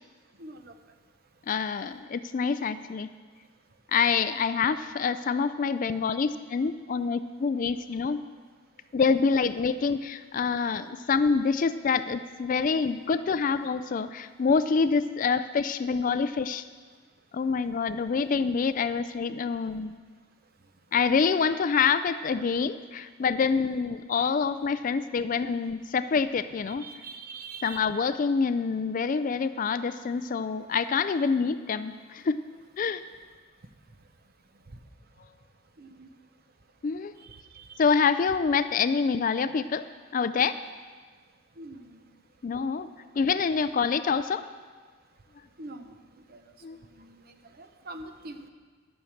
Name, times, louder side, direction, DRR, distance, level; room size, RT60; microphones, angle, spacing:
voice 1, 0.4-0.7 26.7-27.9 34.7-34.8 35.8-36.1 37.2-38.1 41.6-42.0 45.6-48.5, right 3 dB, 45° right, 7 dB, 0.8 m, -45 dB
voice 2, 1.5-3.1 3.9-8.2 8.9-16.6 17.3-20.0 20.9-26.9 27.6-32.4 32.8-33.0 36.8-37.1 37.8-39.9 40.1-40.6 42.4-42.9 43.2-44.4 46.6-46.8, left 5 dB, 40° left, 12 dB, 0.3 m, -26 dB
12.0 x 6.5 x 7.2 m, 1.5 s
head